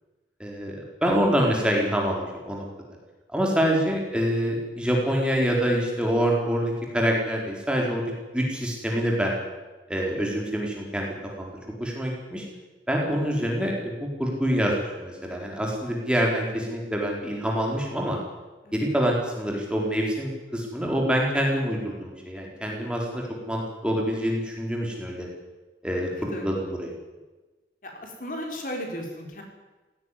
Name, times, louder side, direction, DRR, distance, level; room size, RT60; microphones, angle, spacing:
voice 1, 0.4-0.8 1.0-2.7 3.3-8.0 8.3-9.3 9.9-12.5 12.9-18.2 18.7-25.3 25.8-26.9, equal, 5° right, -1 dB, 4.0 m, -26 dB
voice 2, 26.0-26.5 27.8-29.4, equal, 50° left, 2 dB, 4.4 m, -36 dB
17.0 x 16.5 x 10.0 m, 1.2 s
head